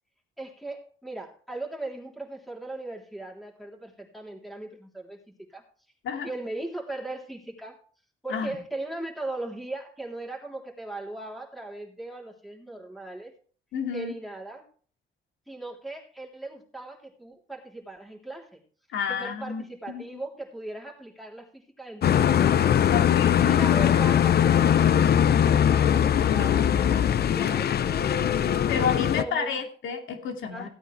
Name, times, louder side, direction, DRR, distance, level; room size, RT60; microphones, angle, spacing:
voice 1, 0.4-5.7 6.2-7.8 8.2-13.3 13.9-14.7 15.5-18.6 19.1-22.6 23.4-28.7 29.1-29.6 30.5-30.7, right 2 dB, ahead, 0 dB, 3.4 m, -38 dB
voice 2, 13.7-14.1 18.9-20.0 22.9-23.5 28.7-30.7, left 6 dB, 80° left, 3 dB, 2.6 m, -30 dB
sound 1, 22.0-29.2, left 9 dB, 55° left, 0.7 m, -21 dB
16.0 x 8.9 x 3.3 m, 0.44 s
cardioid pair, 90°, 20 cm